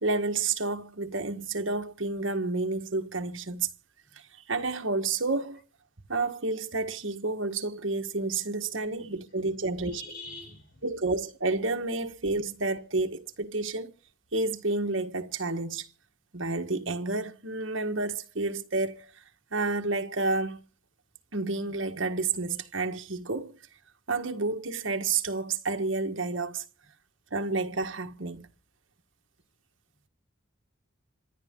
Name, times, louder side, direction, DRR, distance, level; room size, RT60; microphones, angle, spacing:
voice 1, 0.0-3.7 4.5-5.6 6.1-10.0 10.8-13.9 14.3-15.9 16.3-19.1 19.5-20.6 21.3-23.6 24.1-26.6 27.3-28.5, right 3 dB, 65° right, 1.6 m, -30 dB
voice 2, 9.6-10.9, left 2 dB, 45° left, 6.1 m, -45 dB
26.5 x 10.5 x 3.8 m
head